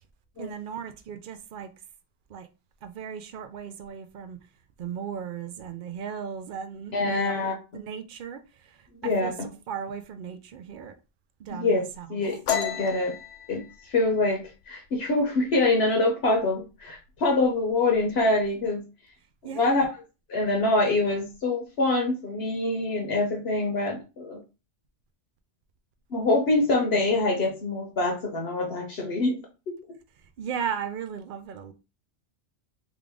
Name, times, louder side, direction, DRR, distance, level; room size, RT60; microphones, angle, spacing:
voice 1, 0.4-1.7 2.3-2.5 2.8-4.4 4.8-7.5 7.7-9.3 9.7-11.0 11.4-12.1 19.4-19.9 26.9-27.0 30.4-31.7, right 7 dB, 60° right, 9 dB, 0.6 m, -36 dB
voice 2, 6.9-7.5 9.0-9.3 11.5-11.8 12.1-13.2 13.5-13.6 13.9-18.8 19.5-19.9 20.3-24.4 26.1-29.4, left 2 dB, 60° left, 1 dB, 1.0 m, -25 dB
sound 1, 12.5-15.9 16.2-16.6 16.9-17.5 17.7-18.5, left 8 dB, 85° left, 1.0 m, -33 dB
3.6 x 2.4 x 3.4 m, 0.30 s
omnidirectional pair, 1.2 m